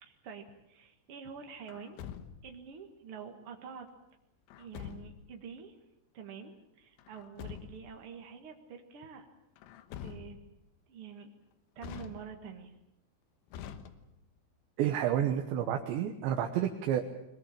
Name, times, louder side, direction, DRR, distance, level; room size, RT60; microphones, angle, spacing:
voice 1, 0.0-2.0 2.4-3.9 4.6-5.7 6.1-9.4 10.0-10.4 10.9-11.3 11.7-12.7, right 6 dB, 65° right, 4 dB, 1.4 m, -47 dB
Truck, 1.7-2.6 4.5-5.3 7.0-8.0 9.6-10.6 11.8-12.6 13.5-14.4, left 8 dB, 85° left, 3.6 m, -46 dB
voice 2, 14.8-17.0, right 10 dB, 80° right, 3 dB, 3.4 m, -30 dB
22.5 x 21.0 x 8.7 m, 0.86 s
omnidirectional pair, 5.2 m